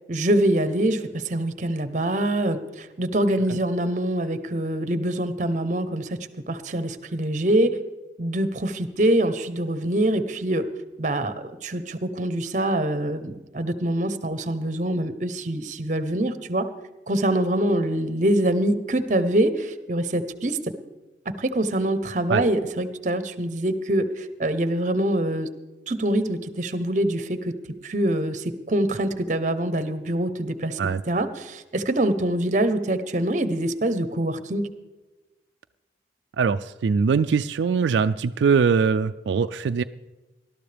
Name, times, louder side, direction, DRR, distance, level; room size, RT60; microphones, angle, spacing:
voice 1, 0.1-6.2 6.5-7.8 8.2-10.6 11.0-16.7 17.1-20.6 21.3-25.5 25.9-27.5 27.8-30.8 31.1-34.7, right 1 dB, 45° right, 11 dB, 0.8 m, -24 dB
voice 2, 36.4-39.8, right 5 dB, 85° right, 9 dB, 0.4 m, -22 dB
19.5 x 12.5 x 3.4 m, 1.2 s
head